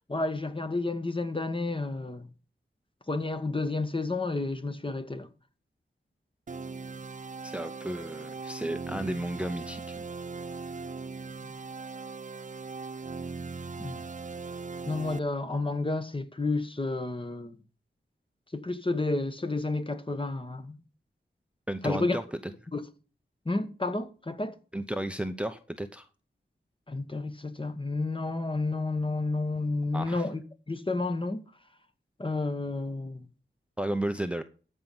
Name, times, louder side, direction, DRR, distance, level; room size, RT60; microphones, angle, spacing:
voice 1, 0.1-2.3 3.1-5.3 13.8-14.0 14.9-17.6 18.5-20.8 21.8-22.2 22.7-22.8 23.4-24.5 26.9-30.4 30.7-31.4 32.2-33.3, left 2 dB, 25° left, 1.3 m, -31 dB
sound 1, 6.5-15.2, right 4 dB, 40° right, 0.5 m, -39 dB
voice 2, 7.4-10.0 21.7-22.2 24.7-26.1 29.9-30.3 33.8-34.4, right 1 dB, 5° right, 0.8 m, -33 dB
14.0 x 5.5 x 7.2 m
wide cardioid pair, 90°, 20 cm